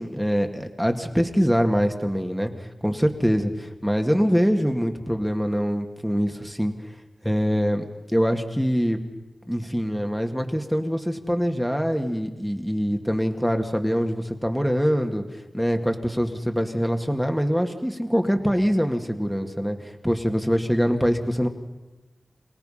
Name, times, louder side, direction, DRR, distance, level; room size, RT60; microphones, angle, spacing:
voice 1, 0.0-6.7 7.2-7.8 8.1-9.0 9.5-15.2 15.5-21.5, equal, ahead, 5 dB, 2.1 m, -24 dB
27.0 x 18.0 x 5.7 m, 1.1 s
wide cardioid pair, 55°, 0 cm